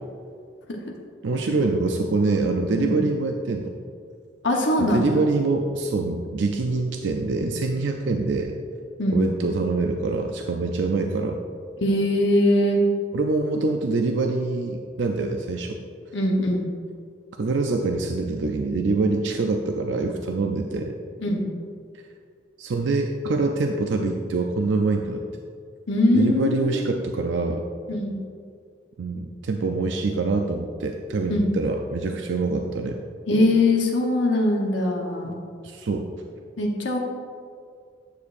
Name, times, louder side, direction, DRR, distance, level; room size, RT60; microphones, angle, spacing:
voice 1, 1.2-3.7 4.8-8.5 9.1-11.4 13.1-15.8 17.4-20.9 22.6-25.2 26.1-27.6 29.0-33.0 35.2-35.3 35.6-36.1, right 3 dB, 80° right, 3 dB, 0.4 m, -25 dB
voice 2, 4.4-5.2 9.0-9.2 11.8-12.8 16.1-16.7 21.2-21.4 25.9-26.8 27.9-28.1 31.3-31.5 33.3-35.4 36.6-37.0, left 1 dB, 80° left, 1 dB, 1.0 m, -22 dB
9.6 x 6.5 x 2.5 m, 2.2 s
head